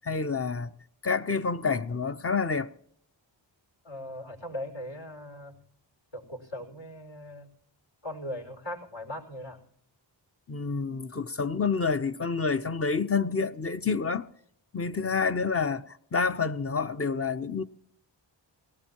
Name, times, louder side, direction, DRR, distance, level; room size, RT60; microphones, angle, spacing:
voice 1, 0.0-0.7 1.0-2.7 10.5-14.3 14.7-17.6, left 5 dB, 30° left, 0.7 m, -28 dB
voice 2, 3.8-5.6 6.1-7.5 8.0-9.6, left 1 dB, 75° left, 5.3 m, -39 dB
19.0 x 18.0 x 3.0 m
cardioid pair, 75°, 46 cm